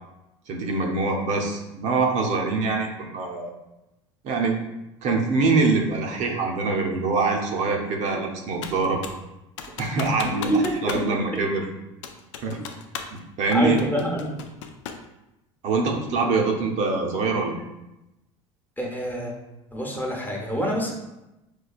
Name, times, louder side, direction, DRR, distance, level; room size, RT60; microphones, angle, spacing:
voice 1, 0.5-3.5 4.2-4.6 5.0-9.0 9.8-11.6 12.4-12.6 13.1-13.8 15.6-17.5, right 3 dB, 55° right, 1 dB, 0.6 m, -24 dB
Computer keyboard, 8.6-9.2 9.6-11.1 11.3-11.4 12.0-13.2 13.5-15.1, left 6 dB, 80° left, 0.4 m, -36 dB
voice 2, 10.2-10.7 11.3-11.4 13.5-14.3 18.8-19.3 19.7-20.9, equal, 10° left, -1 dB, 0.8 m, -26 dB
4.5 x 2.2 x 2.4 m, 0.95 s
hypercardioid pair, 85°, 15 cm